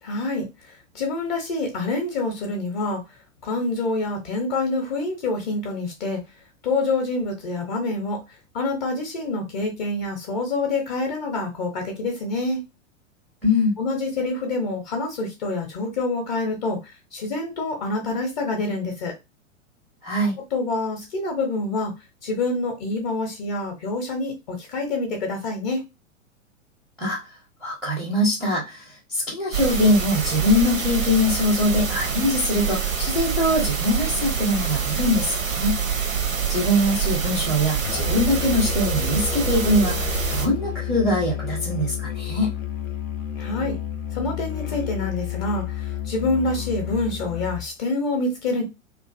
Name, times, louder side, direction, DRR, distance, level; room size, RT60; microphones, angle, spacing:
voice 1, 0.0-3.0 3.4-6.2 6.6-8.2 8.5-12.6 13.8-19.1 20.5-21.9 22.2-25.8 43.4-43.8 44.1-48.6, left 2 dB, 35° left, 1 dB, 0.7 m, -27 dB
voice 2, 13.4-13.7 20.0-20.4 27.0-27.2 27.6-35.8 36.5-42.5, left 1 dB, ahead, -4 dB, 0.5 m, -22 dB
sound 1, 29.5-40.5, right 7 dB, 80° right, 0.7 m, -26 dB
Musical instrument, 37.8-47.7, left 11 dB, 80° left, 0.5 m, -31 dB
2.4 x 2.3 x 2.3 m, 0.24 s
figure-of-eight pair, 100°, 39 cm